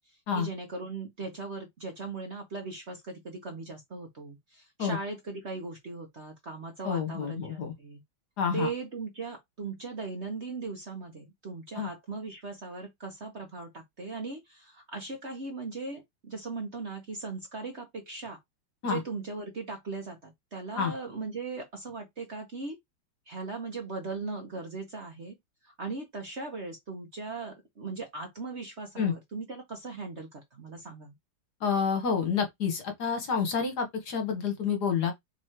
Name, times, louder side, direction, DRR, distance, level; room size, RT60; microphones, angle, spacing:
voice 1, 0.3-8.0 8.5-18.4 18.8-22.8 23.3-25.4 25.6-31.1, right 3 dB, 45° right, 1.0 m, -38 dB
voice 2, 6.8-7.7 8.4-8.7 11.8-11.9 18.8-19.0 20.8-20.9 29.0-29.1 31.6-35.1, left 6 dB, 60° left, 1.6 m, -28 dB
3.7 x 3.1 x 4.4 m
omnidirectional pair, 2.1 m